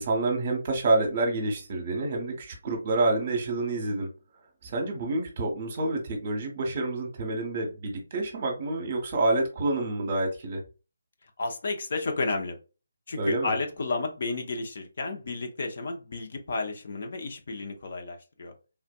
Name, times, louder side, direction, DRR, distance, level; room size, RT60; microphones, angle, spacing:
voice 1, 0.0-4.1 4.6-10.6 13.2-13.5, right 2 dB, 35° right, 0.9 m, -28 dB
voice 2, 11.4-12.6 13.1-18.5, left 3 dB, 50° left, 0.7 m, -32 dB
3.5 x 2.5 x 2.3 m
figure-of-eight pair, 145°, 0 cm